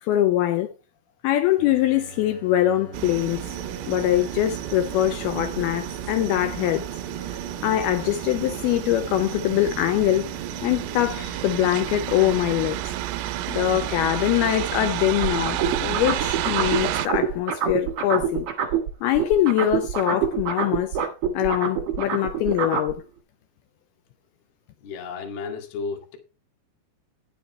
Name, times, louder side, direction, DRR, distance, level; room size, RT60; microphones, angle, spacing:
voice 1, 0.0-0.7 1.2-3.4 3.9-6.9 7.3-10.3 10.6-12.9 13.5-18.5 19.0-21.0 21.3-23.0, left 13 dB, 80° left, 2.3 m, -23 dB
sound 1, 1.6-17.4, left 2 dB, 40° left, 2.0 m, -44 dB
sound 2, 2.9-17.1, right 15 dB, 85° right, 2.7 m, -31 dB
sound 3, 15.2-18.9 19.1-22.9, right 8 dB, 55° right, 1.6 m, -25 dB
voice 2, 24.8-26.2, left 4 dB, 65° left, 3.3 m, -33 dB
10.0 x 6.9 x 4.3 m
omnidirectional pair, 5.1 m